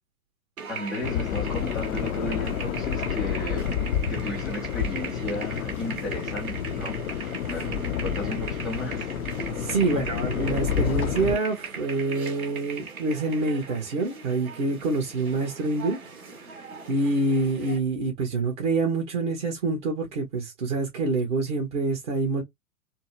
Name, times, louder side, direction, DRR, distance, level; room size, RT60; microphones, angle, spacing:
sound 1, 0.6-17.8, right 5 dB, 70° right, 2.1 m, -39 dB
voice 1, 0.7-3.8 4.1-9.1, left 1 dB, ahead, 0.3 m, -35 dB
sound 2, 1.0-11.4, left 8 dB, 70° left, 0.6 m, -29 dB
voice 2, 9.6-16.0 16.9-22.4, right 3 dB, 50° right, 1.6 m, -26 dB
4.3 x 2.2 x 2.8 m
figure-of-eight pair, 105°, 45 cm